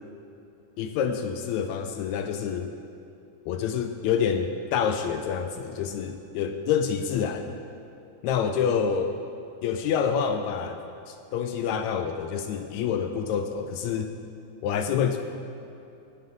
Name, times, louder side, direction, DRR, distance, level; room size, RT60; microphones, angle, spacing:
voice 1, 0.8-2.7 3.4-7.5 8.2-9.2 9.6-10.8 11.1-14.1 14.6-15.2, left 7 dB, 80° left, 7 dB, 1.6 m, -27 dB
17.0 x 11.5 x 3.7 m, 2.8 s
omnidirectional pair, 3.8 m